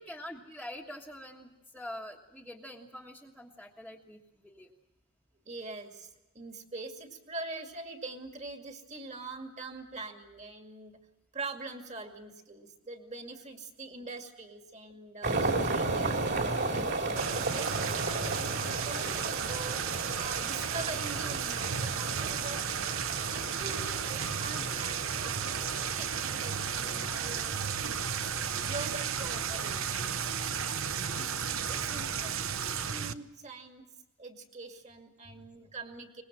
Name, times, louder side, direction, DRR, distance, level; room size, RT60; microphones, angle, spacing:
voice 1, 0.0-4.7 15.7-16.0 18.0-18.2 32.1-32.2 35.2-35.5, left 1 dB, ahead, -2 dB, 1.4 m, -46 dB
voice 2, 5.4-10.9 11.3-16.8 17.5-19.8 20.2-22.6 23.3-28.1 28.6-30.3 31.1-33.8 34.2-36.2, right 3 dB, 30° right, 5 dB, 2.3 m, -44 dB
sound 1, 15.2-32.9, right 3 dB, 50° right, 3.5 m, -36 dB
sound 2, 17.2-33.1, right 7 dB, 65° right, 0.9 m, -34 dB
24.0 x 21.0 x 7.5 m, 0.99 s
head